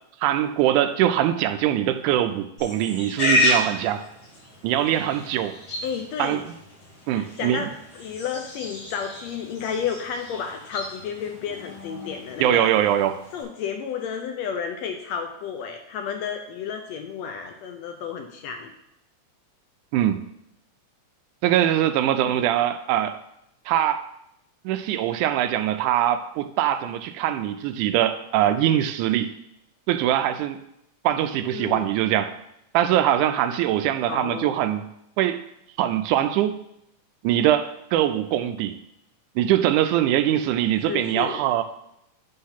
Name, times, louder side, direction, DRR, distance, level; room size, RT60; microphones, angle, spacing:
voice 1, 0.2-4.0 4.6-5.6 6.2-6.4 7.1-7.7 12.4-13.2 19.9-20.2 21.4-23.2 23.7-24.1 24.7-29.3 29.9-30.6 31.0-32.3 32.7-34.9 35.2-35.4 35.8-36.6 37.2-38.8 39.4-41.6, right 11 dB, 85° right, 10 dB, 2.0 m, -22 dB
Livestock farm animals working animals, 2.6-13.4, left 1 dB, 50° left, 4.2 m, -31 dB
voice 2, 5.8-6.4 7.1-7.7 7.9-12.7 13.3-18.7 22.2-22.5 31.5-31.9 34.1-34.5 40.9-41.4, left 7 dB, 75° left, 4 dB, 1.7 m, -32 dB
8.8 x 3.6 x 5.7 m, 0.79 s
omnidirectional pair, 3.5 m